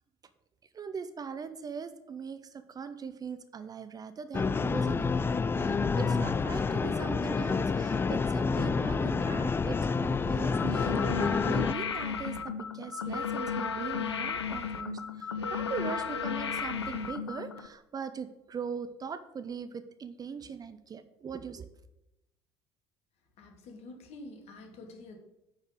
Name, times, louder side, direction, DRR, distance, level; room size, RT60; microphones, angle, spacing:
voice 1, 0.7-21.7, right 6 dB, 30° right, 11 dB, 0.6 m, -41 dB
sound 1, 4.3-11.7, left 4 dB, 15° left, 0.3 m, -28 dB
sound 2, 10.5-17.7, left 6 dB, 80° left, 0.4 m, -34 dB
voice 2, 23.4-25.2, left 2 dB, 50° left, 4 dB, 1.5 m, -47 dB
9.1 x 4.5 x 5.0 m, 0.87 s
figure-of-eight pair, 55°, 14 cm